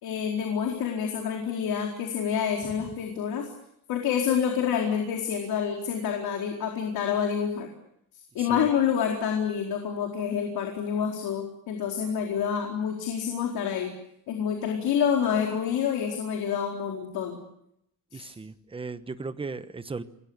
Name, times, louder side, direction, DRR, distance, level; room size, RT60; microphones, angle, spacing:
voice 1, 0.0-3.5 3.9-7.7 8.3-13.9 14.3-17.4 18.1-18.3, left 8 dB, 80° left, 1 dB, 4.4 m, -28 dB
voice 2, 18.1-20.0, right 4 dB, 15° right, 11 dB, 1.1 m, -36 dB
28.0 x 21.0 x 8.1 m, 0.77 s
cardioid pair, 170°, 36 cm